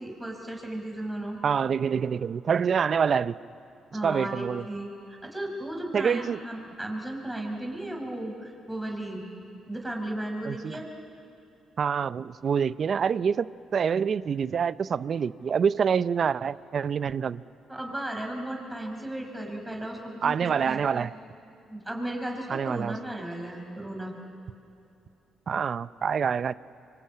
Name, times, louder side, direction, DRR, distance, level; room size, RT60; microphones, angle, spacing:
voice 1, 0.0-1.4 3.9-4.9 5.2-9.2 9.7-10.9 17.7-21.1 21.7-24.3, right 1 dB, 10° right, 1 dB, 5.5 m, -35 dB
voice 2, 1.4-3.4 4.0-4.6 5.9-6.4 10.4-10.8 11.8-17.4 20.2-21.1 22.5-23.0 25.5-26.5, right 7 dB, 50° right, 16 dB, 0.6 m, -26 dB
26.0 x 24.5 x 8.8 m, 2.6 s
cardioid pair, 90°, 0 cm